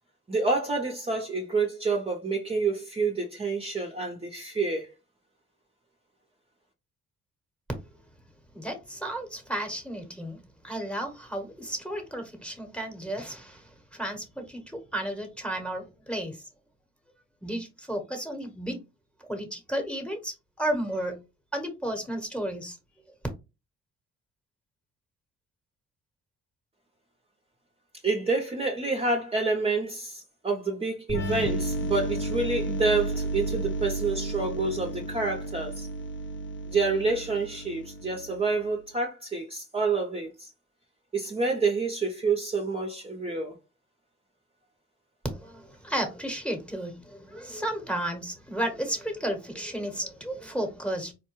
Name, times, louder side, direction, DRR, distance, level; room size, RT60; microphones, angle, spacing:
voice 1, 0.3-4.9 28.0-35.9 36.7-40.5 41.1-43.5, right 3 dB, 20° right, 0.7 m, -28 dB
voice 2, 8.5-13.6 14.0-16.3 17.4-18.8 19.3-21.2 21.5-22.8 45.3-51.1, right 1 dB, 5° left, 1.1 m, -33 dB
sound 1, 31.1-38.7, right 1 dB, 40° left, 0.7 m, -32 dB
4.2 x 2.2 x 3.0 m
cardioid pair, 90°, 30 cm